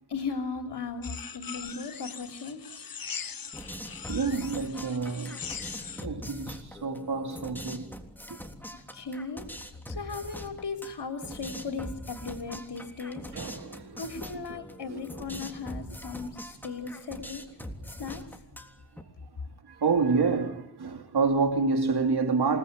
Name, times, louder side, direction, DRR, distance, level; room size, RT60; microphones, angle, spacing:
voice 1, 0.1-2.6 8.7-9.5 9.9-13.3 14.0-17.4 18.0-18.2, left 4 dB, 90° left, 3.2 m, -37 dB
sound 1, 1.0-6.1, left 6 dB, 60° left, 1.2 m, -41 dB
sound 2, 3.5-19.0, equal, 5° left, 3.4 m, -43 dB
voice 2, 4.1-5.4 5.9-7.9 8.3-8.4 13.3-14.0 14.9-15.1 19.6-22.6, right 4 dB, 75° right, 2.7 m, -28 dB
28.0 x 19.5 x 9.5 m
wide cardioid pair, 90°, 39 cm